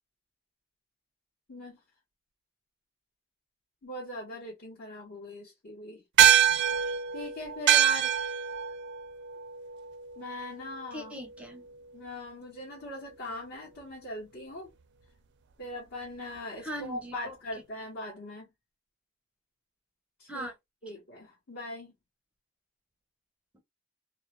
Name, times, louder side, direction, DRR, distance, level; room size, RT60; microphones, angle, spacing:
voice 1, 1.5-1.8 3.8-6.0 7.1-8.2 10.2-11.1 11.9-14.7 15.6-18.5 20.2-20.5 20.8-22.0, left 1 dB, 55° left, 1.0 m, -40 dB
sound 1, 6.2-10.9, right 10 dB, 55° right, 0.4 m, -25 dB
voice 2, 10.9-11.7 16.6-17.3 20.3-20.5 23.5-23.6, equal, 5° right, 0.6 m, -40 dB
2.3 x 2.0 x 2.8 m
head